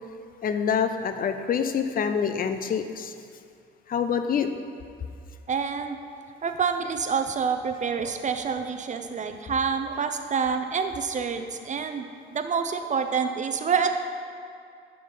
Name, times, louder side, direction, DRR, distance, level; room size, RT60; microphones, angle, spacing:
voice 1, 0.4-3.1 3.9-4.5, left 7 dB, 45° left, 8 dB, 0.6 m, -26 dB
voice 2, 5.5-6.0 6.4-14.0, right 6 dB, 40° right, 7 dB, 0.7 m, -27 dB
10.5 x 5.4 x 4.0 m, 2.4 s
cardioid pair, 90°, 20 cm